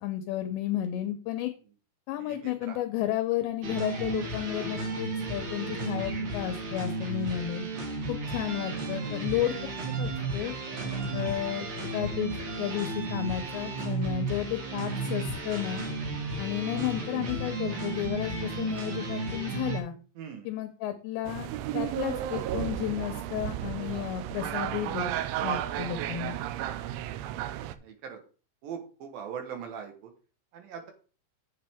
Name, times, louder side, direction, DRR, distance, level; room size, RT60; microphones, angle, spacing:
voice 1, 0.0-1.5 2.1-7.7 8.1-9.7 10.0-10.5 11.1-11.7 11.9-15.9 16.4-19.9 20.4-21.5 21.7-25.1 25.4-26.4, left 12 dB, 80° left, 7 dB, 2.9 m, -32 dB
voice 2, 2.1-2.8 10.9-11.2 20.2-20.5 26.1-26.3 27.8-28.2 28.6-30.1 30.5-30.9, right 7 dB, 65° right, 5 dB, 2.4 m, -41 dB
sound 1, 3.6-19.8, right 3 dB, 50° right, 2.9 m, -33 dB
sound 2, 21.3-27.8, right 12 dB, 90° right, 3.1 m, -33 dB
8.1 x 7.9 x 3.5 m, 0.37 s
omnidirectional pair, 5.3 m